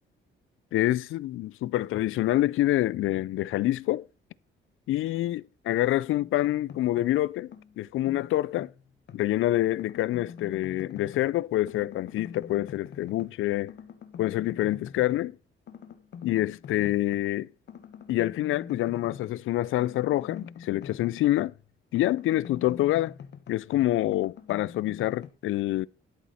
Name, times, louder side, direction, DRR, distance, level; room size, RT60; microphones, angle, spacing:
voice 1, 0.7-4.0 4.9-8.7 9.1-13.7 14.2-15.4 16.2-17.5 18.1-21.5 21.9-23.1 23.5-25.9, left 15 dB, 80° left, 0.4 m, -26 dB
sound 1, 6.2-7.2 7.5-9.3 9.6-11.4 11.7-13.4 13.7-15.3 15.7-17.3 17.7-21.7 21.9-25.3, left 7 dB, 55° left, 1.2 m, -45 dB
12.5 x 7.3 x 4.2 m
cardioid pair, 155°, 21 cm